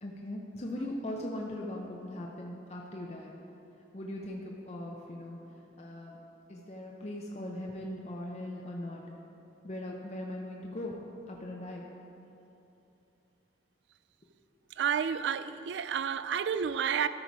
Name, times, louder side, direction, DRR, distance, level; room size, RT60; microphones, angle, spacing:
voice 1, 0.0-3.3 3.9-5.4 5.8-6.2 6.5-9.0 9.6-11.0 11.3-11.9, left 1 dB, 35° left, -1 dB, 0.7 m, -39 dB
voice 2, 14.8-17.1, right 7 dB, 75° right, 13 dB, 0.3 m, -30 dB
13.5 x 5.5 x 4.7 m, 2.9 s
head